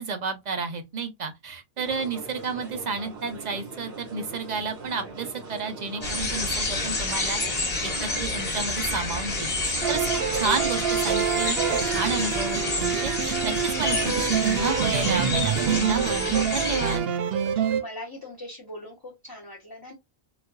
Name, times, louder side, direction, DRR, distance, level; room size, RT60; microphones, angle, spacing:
voice 1, 0.0-7.4 7.8-10.1 10.3-11.6 11.9-17.0, right 4 dB, 45° right, 0.7 m, -31 dB
sound 1, 1.8-15.4, right 3 dB, 90° right, 1.8 m, -41 dB
sound 2, 6.0-17.0, left 2 dB, 35° left, 1.1 m, -29 dB
sound 3, 9.8-17.8, right 8 dB, 70° right, 0.8 m, -26 dB
voice 2, 17.8-19.9, left 1 dB, 20° left, 0.8 m, -40 dB
4.0 x 2.5 x 2.3 m
omnidirectional pair, 1.1 m